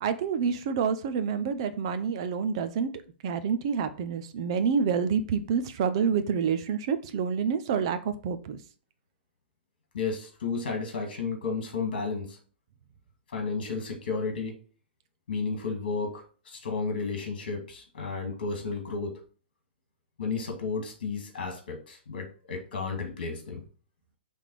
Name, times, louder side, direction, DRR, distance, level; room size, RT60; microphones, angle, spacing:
voice 1, 0.0-2.9 3.2-8.6, right 6 dB, 25° right, 0.5 m, -28 dB
voice 2, 9.9-12.4 13.3-14.6 15.3-19.2 20.2-23.6, left 4 dB, 50° left, 2.3 m, -33 dB
5.8 x 3.4 x 4.9 m
hypercardioid pair, 175°, 6 cm